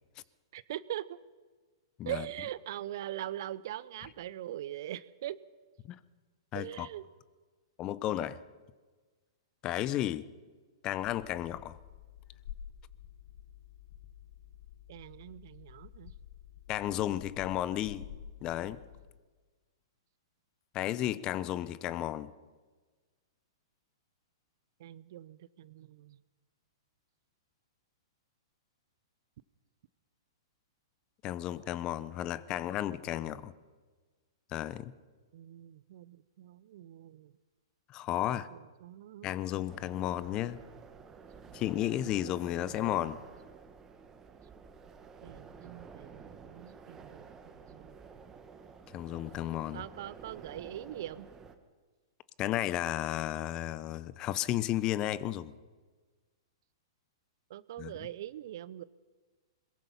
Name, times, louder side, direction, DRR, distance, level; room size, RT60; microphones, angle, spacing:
voice 1, 0.5-1.1 2.0-5.4 6.5-7.0 14.9-16.1 24.8-26.2 33.2-33.4 35.3-37.3 38.5-39.3 42.0-43.0 45.2-48.0 49.7-51.3 57.5-58.8, right 13 dB, 55° right, 0.7 m, -42 dB
voice 2, 6.5-6.9 7.8-8.4 9.6-10.3 10.8-11.8 16.7-18.0 18.4-18.8 20.7-22.3 31.2-33.5 34.5-34.9 37.9-38.5 39.2-40.6 41.5-43.2 48.9-49.8 52.4-55.5 57.8-57.9, left 13 dB, 30° left, 0.9 m, -33 dB
sound 1, 11.0-19.0, left 9 dB, 50° left, 2.0 m, -50 dB
sound 2, 39.7-51.5, right 5 dB, 20° right, 1.8 m, -51 dB
22.0 x 22.0 x 5.7 m
figure-of-eight pair, 110°, 2 cm